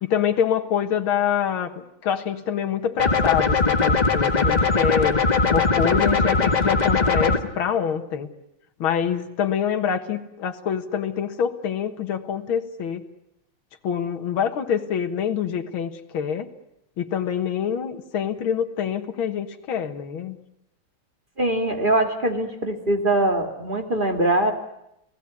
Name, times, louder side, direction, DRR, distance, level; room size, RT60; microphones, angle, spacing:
voice 1, 0.0-1.7 2.0-5.2 5.5-8.3 8.8-13.0 13.8-16.5 17.0-20.4, left 8 dB, 70° left, 6 dB, 2.3 m, -25 dB
sound 1, 3.0-7.4, left 4 dB, 20° left, 1.5 m, -20 dB
voice 2, 21.4-24.5, right 1 dB, 25° right, 5 dB, 2.3 m, -22 dB
30.0 x 18.0 x 9.7 m, 0.83 s
omnidirectional pair, 2.3 m